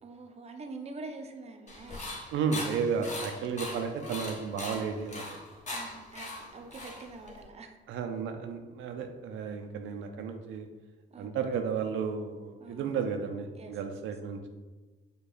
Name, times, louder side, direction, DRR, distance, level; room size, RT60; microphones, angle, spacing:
voice 1, 0.0-2.2 5.7-7.8 11.1-11.4 12.6-13.0 13.6-13.8, right 3 dB, 30° right, 5 dB, 0.6 m, -45 dB
sound 1, 1.7-7.4, left 2 dB, 35° left, 1.3 m, -40 dB
voice 2, 2.3-5.4 7.9-10.7 11.2-14.5, right 6 dB, 80° right, 6 dB, 0.5 m, -33 dB
5.4 x 2.3 x 3.9 m, 1.2 s
cardioid pair, 90°, 20 cm